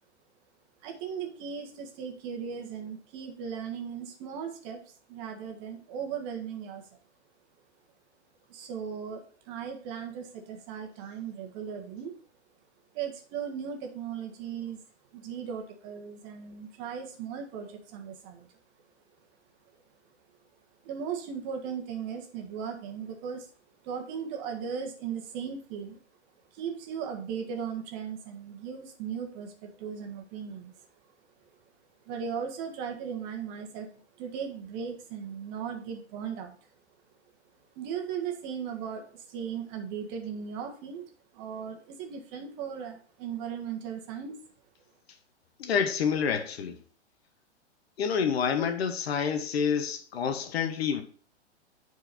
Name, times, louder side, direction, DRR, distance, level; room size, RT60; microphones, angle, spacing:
voice 1, 0.8-6.8 8.5-12.1 12.9-14.8 15.1-18.5 20.8-23.5 23.8-26.0 26.5-30.9 32.0-33.9 34.2-36.5 37.7-41.0 41.3-44.4, right 7 dB, 35° right, 1.7 m, -37 dB
voice 2, 45.6-46.8 48.0-51.0, left 7 dB, 60° left, 1.2 m, -28 dB
8.0 x 4.7 x 4.2 m
figure-of-eight pair, 110°, 35 cm